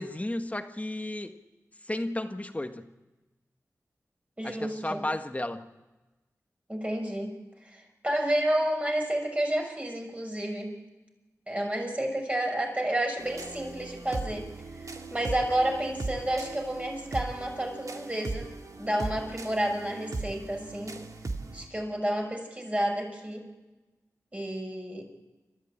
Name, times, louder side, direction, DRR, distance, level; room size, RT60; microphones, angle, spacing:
voice 1, 0.0-1.3 1.8-2.9 4.4-5.6, left 1 dB, 25° left, 7 dB, 1.5 m, -33 dB
voice 2, 4.4-5.0 6.7-7.4 7.7-10.7 11.5-14.5 15.1-18.5 18.8-21.0 21.5-23.4 24.3-25.1, right 1 dB, 20° right, 2 dB, 6.0 m, -30 dB
sound 1, 13.2-21.7, right 3 dB, 65° right, 2.1 m, -38 dB
28.0 x 13.5 x 8.9 m, 1.1 s
cardioid pair, 50°, 6 cm